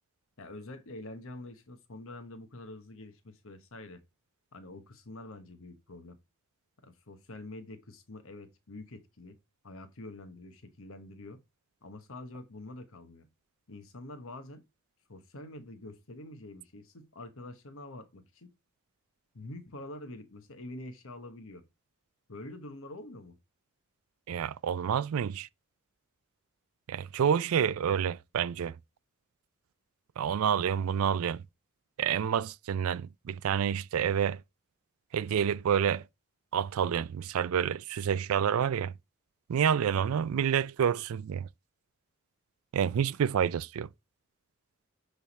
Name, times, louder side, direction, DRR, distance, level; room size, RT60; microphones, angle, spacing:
voice 1, 0.4-4.0 4.5-6.2 6.8-9.4 9.6-11.4 11.8-13.3 13.7-14.6 15.1-18.5 19.3-21.7 22.3-23.4 39.9-40.1, left 2 dB, 65° left, 1.1 m, -46 dB
voice 2, 24.3-25.5 26.9-28.7 30.2-31.4 32.0-34.4 35.1-36.0 36.5-38.9 39.5-41.5 42.7-43.9, right 8 dB, 70° right, 0.4 m, -28 dB
10.0 x 3.5 x 4.1 m
head